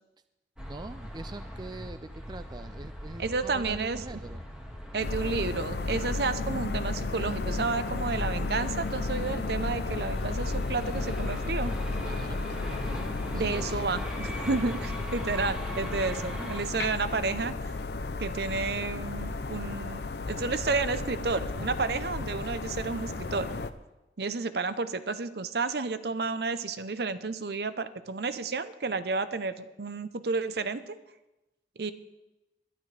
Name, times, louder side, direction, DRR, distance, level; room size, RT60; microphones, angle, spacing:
sound 1, 0.6-16.6, equal, 5° right, 1.8 m, -40 dB
voice 1, 0.6-4.4 12.1-12.4 13.3-14.0, right 2 dB, 25° right, 11 dB, 0.4 m, -43 dB
voice 2, 3.2-4.2 4.9-11.7 13.3-17.7 18.2-20.0 20.3-23.5 24.2-31.0 31.8-31.9, right 4 dB, 60° right, 13 dB, 0.7 m, -31 dB
sound 2, 5.0-23.7, left 3 dB, 65° left, 0.7 m, -33 dB
21.5 x 11.5 x 3.4 m, 0.99 s
head